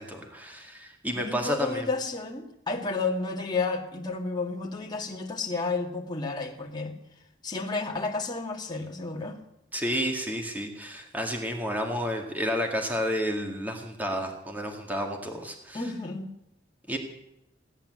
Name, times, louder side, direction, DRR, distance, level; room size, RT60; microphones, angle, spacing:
voice 1, 0.0-1.9 9.7-15.8 16.9-17.0, equal, 10° right, 2 dB, 2.0 m, -31 dB
voice 2, 1.2-6.9 7.4-9.4 9.8-9.9 15.7-16.4, left 3 dB, 25° left, 0 dB, 2.1 m, -31 dB
17.0 x 10.5 x 7.7 m, 0.86 s
head